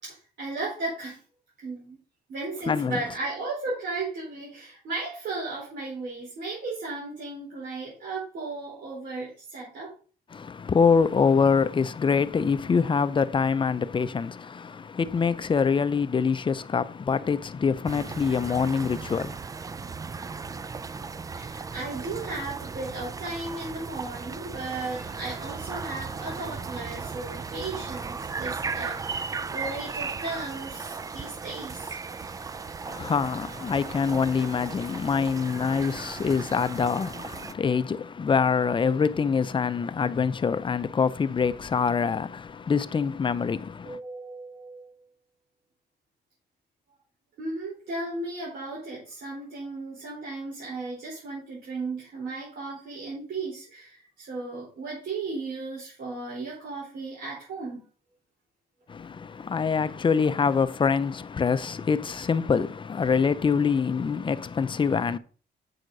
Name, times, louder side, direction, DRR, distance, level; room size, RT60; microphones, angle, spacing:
voice 1, 0.0-1.2 1.6-2.0 2.3-9.9 21.3-32.0 43.8-44.9 47.4-57.9, right 3 dB, 80° right, 4.2 m, -35 dB
voice 2, 2.7-3.0 10.3-19.4 32.8-44.0 58.9-65.2, left 5 dB, 30° left, 0.5 m, -25 dB
sound 1, 17.9-37.5, right 4 dB, 20° right, 0.3 m, -36 dB
sound 2, 24.7-36.7, right 5 dB, 50° right, 3.5 m, -52 dB
8.7 x 6.4 x 4.0 m
cardioid pair, 130°, 17 cm